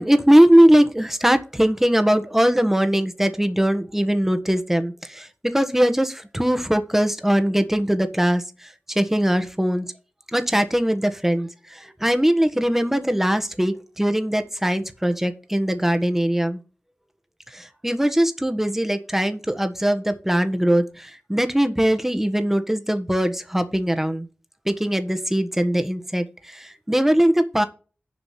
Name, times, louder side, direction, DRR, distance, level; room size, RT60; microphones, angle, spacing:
voice 1, 0.0-9.9 10.3-16.6 17.5-24.3 24.6-27.6, equal, 10° right, 9 dB, 1.4 m, -21 dB
7.5 x 5.1 x 7.3 m, 0.35 s
cardioid pair, 45°, 4 cm